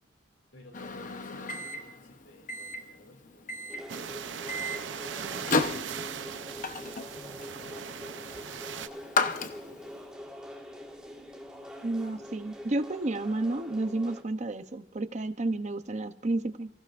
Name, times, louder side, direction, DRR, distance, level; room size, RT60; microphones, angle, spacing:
voice 1, 0.5-4.4 4.9-10.3, left 1 dB, 75° left, 4 dB, 2.8 m, -57 dB
Microwave oven, 0.7-10.0, left 3 dB, 45° left, 0.9 m, -34 dB
sound 1, 3.7-14.2, equal, 5° right, 1.7 m, -45 dB
sound 2, 3.9-8.9, right 7 dB, 85° right, 0.7 m, -39 dB
voice 2, 11.8-16.7, right 2 dB, 40° right, 10 dB, 0.7 m, -31 dB
28.5 x 15.5 x 2.5 m, 0.81 s
head